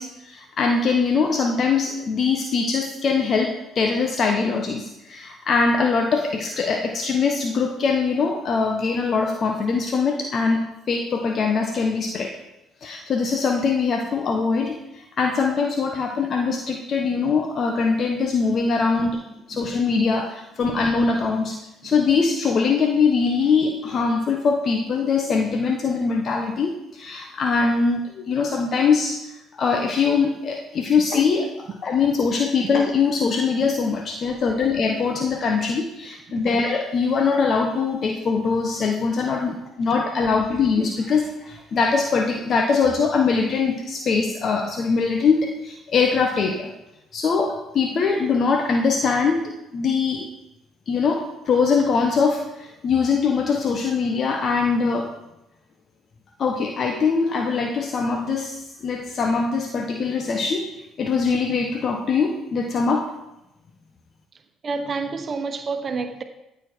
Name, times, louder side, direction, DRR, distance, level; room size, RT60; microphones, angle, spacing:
voice 1, 0.0-12.4 12.8-19.2 19.5-21.6 21.8-46.7 47.1-50.3 50.9-55.1 56.4-60.7 61.0-63.1, left 5 dB, 50° left, 1.2 m, -22 dB
voice 2, 64.6-66.2, right 4 dB, 45° right, 1.2 m, -29 dB
14.5 x 7.2 x 4.6 m
hypercardioid pair, 60°, 0 cm